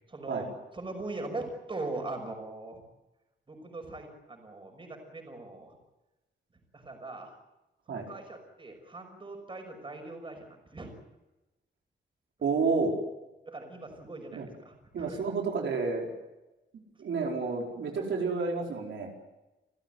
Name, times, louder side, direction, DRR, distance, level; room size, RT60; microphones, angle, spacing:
voice 1, 0.1-0.5 0.7-2.8 3.5-5.7 6.7-7.3 7.9-10.9 13.4-15.2, right 2 dB, 25° right, 4 dB, 5.9 m, -41 dB
voice 2, 12.4-12.9 14.3-14.5 14.9-16.1 17.0-19.1, right 4 dB, 75° right, 0 dB, 4.7 m, -30 dB
29.5 x 15.5 x 9.2 m, 1.0 s
wide cardioid pair, 160°, 19 cm